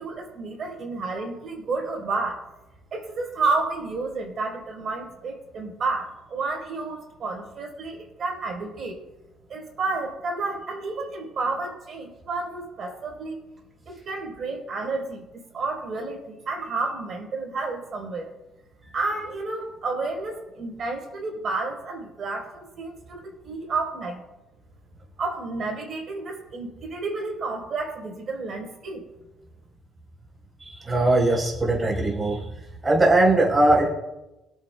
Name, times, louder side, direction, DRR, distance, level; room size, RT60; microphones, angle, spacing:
voice 1, 0.0-2.4 2.9-9.0 9.5-13.4 13.9-18.3 18.9-24.2 25.2-29.1, right 3 dB, 50° right, 1 dB, 3.8 m, -31 dB
voice 2, 30.6-32.4 32.8-33.9, right 2 dB, 20° right, -2 dB, 3.9 m, -20 dB
24.5 x 8.7 x 2.2 m, 1.0 s
cardioid pair, 105°, 0 cm